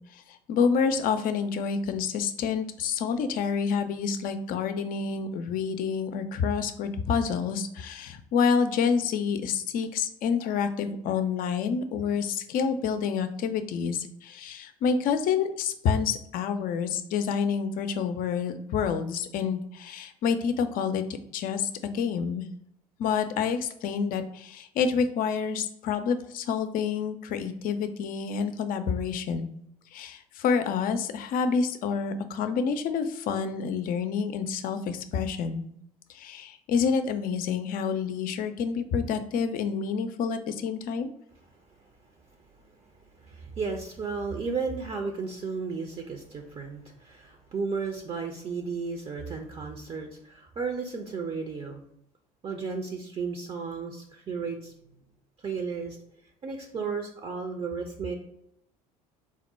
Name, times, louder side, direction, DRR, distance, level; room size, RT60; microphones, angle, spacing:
voice 1, 0.5-21.0 21.3-22.5 23.0-29.5 29.9-35.6 36.1-41.1, left 6 dB, 50° left, 9 dB, 0.5 m, -28 dB
voice 2, 43.1-51.8 52.4-54.7 55.4-56.0 56.4-58.1, right 5 dB, 30° right, 3 dB, 0.6 m, -34 dB
3.6 x 2.1 x 4.2 m, 0.74 s
hypercardioid pair, 65°, 19 cm